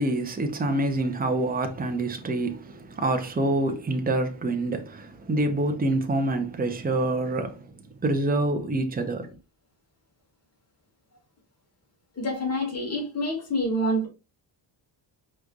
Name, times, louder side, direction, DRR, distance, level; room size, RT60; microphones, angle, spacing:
voice 1, 0.0-7.7 8.0-9.4, right 2 dB, 20° right, 0.8 m, -26 dB
voice 2, 12.2-14.1, equal, 30° left, 2.2 m, -27 dB
5.0 x 3.3 x 2.5 m
cardioid pair, 95°, 49 cm